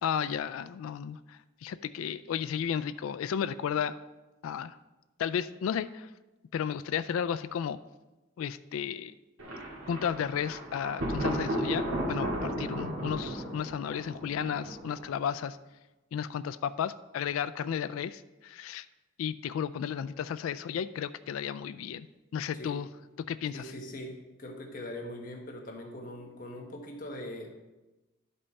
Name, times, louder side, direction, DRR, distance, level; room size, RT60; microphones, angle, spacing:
voice 1, 0.0-4.0 4.4-4.8 5.2-6.1 6.5-7.8 8.4-9.1 9.9-15.6 16.1-18.9 19.2-22.1 22.3-22.9 23.3-23.6, left 8 dB, 80° left, 14 dB, 0.3 m, -33 dB
Thunder, 9.4-15.2, right 1 dB, 80° right, 2.2 m, -34 dB
voice 2, 23.5-27.5, left 1 dB, 40° left, 1 dB, 1.2 m, -41 dB
11.0 x 5.4 x 4.1 m, 1.1 s
head